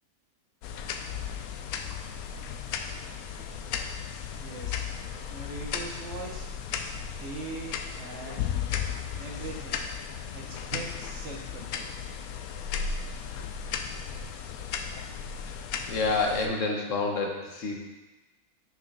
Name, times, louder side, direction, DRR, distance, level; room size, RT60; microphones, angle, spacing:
sound 1, 0.6-16.5, left 7 dB, 80° left, 1.0 m, -35 dB
voice 1, 4.4-5.0 5.3-6.5 7.2-8.4 9.2-9.8 10.3-11.9, right 3 dB, 55° right, 0 dB, 1.2 m, -41 dB
voice 2, 15.9-17.8, left 3 dB, 60° left, 1 dB, 1.3 m, -28 dB
6.7 x 4.6 x 5.4 m, 1.1 s
omnidirectional pair, 1.5 m